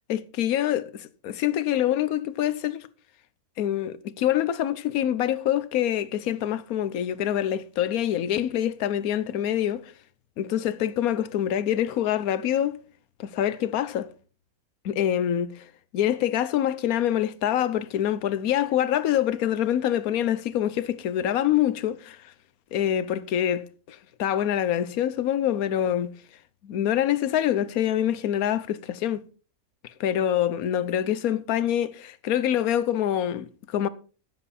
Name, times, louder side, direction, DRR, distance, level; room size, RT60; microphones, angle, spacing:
voice 1, 0.1-2.9 3.6-9.9 10.4-12.8 13.2-14.1 14.8-22.3 22.7-26.1 26.6-29.2 29.8-33.9, left 11 dB, 75° left, 1.2 m, -25 dB
15.5 x 7.7 x 4.2 m
omnidirectional pair, 1.6 m